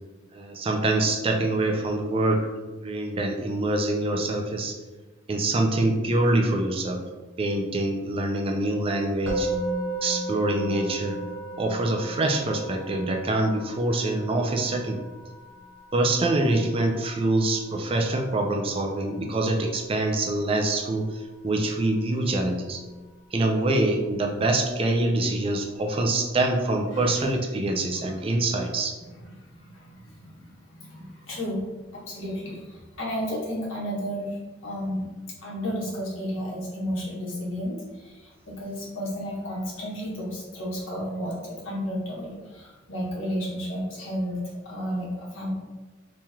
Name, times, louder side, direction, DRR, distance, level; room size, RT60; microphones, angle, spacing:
voice 1, 0.3-4.7 5.3-7.0 7.4-9.5 10.0-11.2 11.6-15.0 15.9-22.8 23.3-28.9, right 2 dB, 30° right, 3 dB, 0.4 m, -25 dB
Musical instrument, 9.3-20.4, right 2 dB, 80° right, 1.1 m, -36 dB
voice 2, 26.9-27.3 28.0-28.4 29.0-35.1 35.4-44.4 44.6-45.5, equal, 90° left, -5 dB, 1.2 m, -33 dB
3.0 x 2.8 x 3.5 m, 1.2 s
head